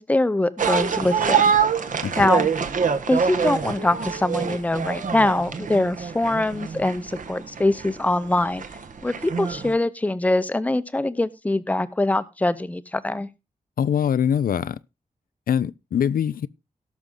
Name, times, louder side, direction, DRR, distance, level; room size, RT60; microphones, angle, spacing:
voice 1, 0.0-1.5 2.2-2.5 3.1-8.7 9.0-13.3, left 2 dB, 10° left, 0.6 m, -23 dB
sound 1, 0.6-9.7, right 6 dB, 65° right, 1.3 m, -25 dB
voice 2, 13.8-14.8 15.5-16.5, left 8 dB, 80° left, 0.5 m, -23 dB
17.5 x 6.2 x 3.8 m
wide cardioid pair, 160°, 15 cm